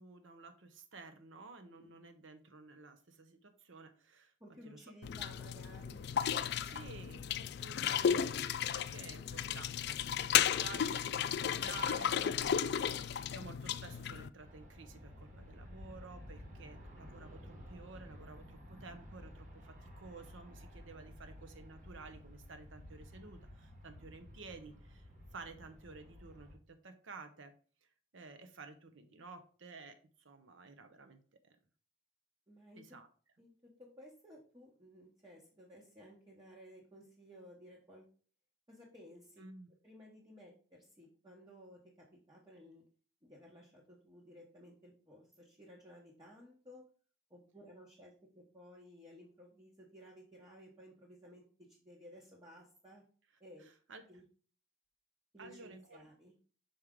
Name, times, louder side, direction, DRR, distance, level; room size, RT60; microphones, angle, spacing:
voice 1, 0.0-4.3 4.6-4.8 6.6-27.5 28.1-30.0 30.2-31.2 32.8-33.1 39.4-39.7 53.9-54.0 55.4-56.1, right 3 dB, 70° right, 8 dB, 0.8 m, -53 dB
voice 2, 4.4-6.1 32.5-33.0 33.4-38.1 38.7-39.4 39.8-42.9 43.2-46.9 47.3-53.0 53.4-53.7 54.1-54.2 55.3-56.3, equal, 20° right, -3 dB, 1.1 m, -57 dB
sound 1, 5.0-14.3, left 8 dB, 55° left, 0.3 m, -34 dB
Aircraft, 14.4-26.6, equal, 40° right, 1.2 m, -53 dB
6.3 x 4.7 x 3.7 m, 0.42 s
head